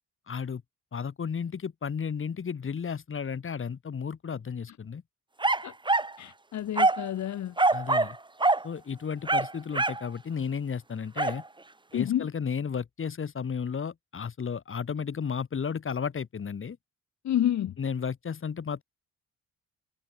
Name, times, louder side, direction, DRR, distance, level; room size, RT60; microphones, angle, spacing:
voice 1, 0.3-0.6 0.9-5.0 7.7-8.2 8.6-11.4 11.9-16.8 17.8-18.8, left 6 dB, 45° left, 4.9 m, -33 dB
sound 1, 5.4-6.2 6.8-7.1 7.6-8.2 8.4-8.7 9.3-10.1 11.2-11.4, right 2 dB, 15° right, 2.3 m, -24 dB
voice 2, 6.2-7.5 11.9-12.3 17.2-17.7, left 11 dB, 65° left, 2.3 m, -29 dB
cardioid pair, 90°, 30 cm